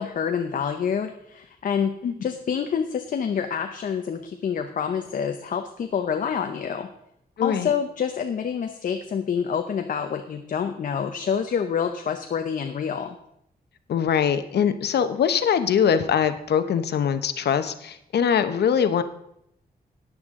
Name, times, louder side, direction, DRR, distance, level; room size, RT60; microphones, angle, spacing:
voice 1, 0.0-1.9 2.2-6.9 7.4-13.2, left 7 dB, 55° left, 6 dB, 0.7 m, -27 dB
voice 2, 7.4-7.7 13.9-19.0, left 8 dB, 85° left, 10 dB, 0.8 m, -22 dB
14.0 x 9.9 x 3.7 m, 0.77 s
wide cardioid pair, 180°, 17 cm